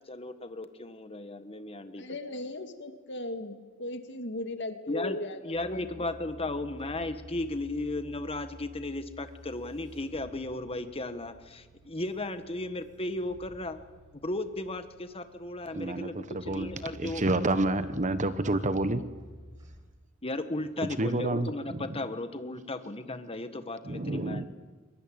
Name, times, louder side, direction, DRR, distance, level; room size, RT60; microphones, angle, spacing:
voice 1, 0.1-2.0 4.9-5.2 5.4-13.8 14.1-17.2 20.2-24.5, left 2 dB, 30° left, 9 dB, 1.5 m, -35 dB
voice 2, 2.0-5.6, left 2 dB, 60° left, 7 dB, 2.1 m, -37 dB
sound 1, 5.5-19.8, equal, 20° right, 5.8 m, -51 dB
voice 3, 15.7-16.7 17.0-19.0 21.0-21.8 23.9-24.5, right 2 dB, 35° right, 12 dB, 1.2 m, -29 dB
23.0 x 21.5 x 8.9 m, 1.3 s
head